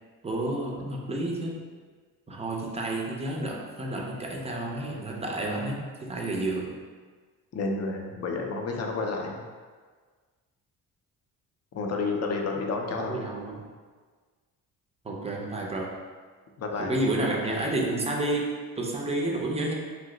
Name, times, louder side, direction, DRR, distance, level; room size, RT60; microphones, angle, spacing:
voice 1, 0.2-1.6 2.3-6.7 13.0-13.6 15.0-16.0 16.8-19.7, right 2 dB, 15° right, -1 dB, 0.4 m, -30 dB
voice 2, 7.5-9.4 11.7-13.3 16.6-17.0, left 3 dB, 45° left, 1 dB, 0.5 m, -30 dB
2.7 x 2.0 x 3.7 m, 1.5 s
cardioid pair, 95°, 37 cm